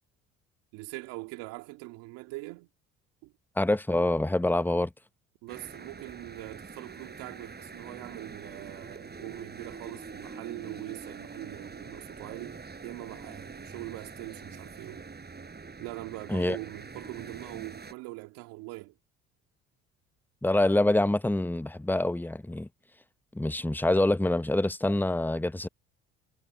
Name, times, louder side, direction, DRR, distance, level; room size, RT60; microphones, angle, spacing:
voice 1, 0.7-2.7 3.2-3.3 5.4-15.0 15.8-19.0, right 23 dB, 75° right, 2.5 m, -42 dB
voice 2, 3.6-4.9 16.3-16.6 20.4-22.7 23.3-25.7, left 1 dB, 5° left, 0.9 m, -26 dB
sound 1, 5.5-17.9, right 4 dB, 30° right, 6.5 m, -45 dB
hypercardioid pair, 60°, 35 cm